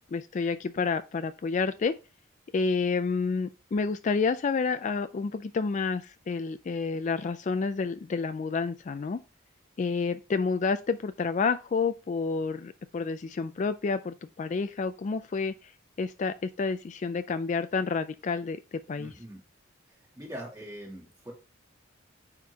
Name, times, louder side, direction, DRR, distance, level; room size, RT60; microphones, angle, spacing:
voice 1, 0.1-1.9 2.5-9.2 9.8-15.7 16.0-18.6 18.9-19.1, left 4 dB, 40° left, 0.3 m, -29 dB
voice 2, 18.9-19.4 19.9-21.3, right 1 dB, 15° right, 2.7 m, -43 dB
9.4 x 3.7 x 2.8 m
head